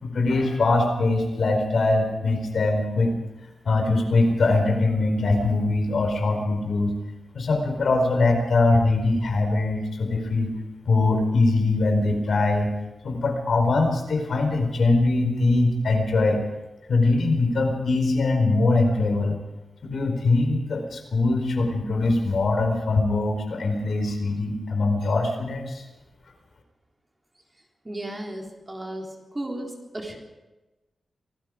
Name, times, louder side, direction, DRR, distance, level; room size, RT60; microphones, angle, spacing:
voice 1, 0.0-3.1 3.6-7.0 7.3-10.5 10.9-12.7 13.0-16.4 16.9-19.4 19.8-25.8, left 2 dB, 65° left, 4 dB, 4.6 m, -22 dB
voice 2, 27.8-30.2, right 1 dB, 15° right, 0 dB, 3.8 m, -34 dB
26.5 x 19.5 x 5.1 m, 1.1 s
wide cardioid pair, 155°, 0 cm